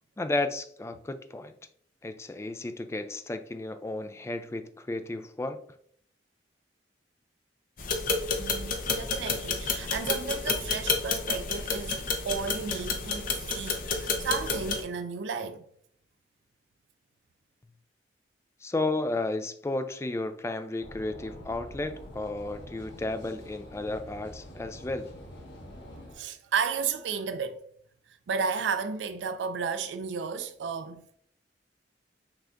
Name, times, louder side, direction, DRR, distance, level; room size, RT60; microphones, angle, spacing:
voice 1, 0.2-1.5 2.0-5.6 18.6-25.1, left 2 dB, 15° left, 0.3 m, -33 dB
sound 1, 7.8-14.8, left 4 dB, 50° left, 0.6 m, -30 dB
voice 2, 8.4-15.6 26.1-27.7 28.3-31.1, right 5 dB, 80° right, 0.4 m, -33 dB
sound 2, 20.8-26.1, equal, 80° left, 1.6 m, -46 dB
6.0 x 3.3 x 2.5 m
head